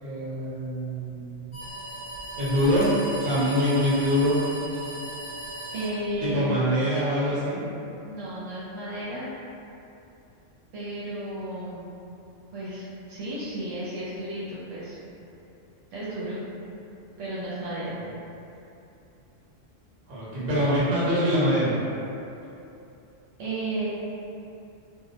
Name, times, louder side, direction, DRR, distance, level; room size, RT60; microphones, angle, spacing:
voice 1, 0.0-1.5 2.4-2.9 3.2-4.4 6.2-7.6 17.9-18.0 20.1-21.7, equal, 45° right, -10 dB, 0.8 m, -24 dB
sound 1, 1.5-6.5, right 2 dB, 35° left, 0.8 m, -37 dB
voice 2, 5.7-6.6 8.0-9.3 10.7-11.9 12.5-15.0 15.9-16.4 17.2-18.0 23.4-23.9, right 1 dB, 75° right, -9 dB, 0.9 m, -33 dB
2.4 x 2.0 x 2.6 m, 2.8 s
omnidirectional pair, 1.3 m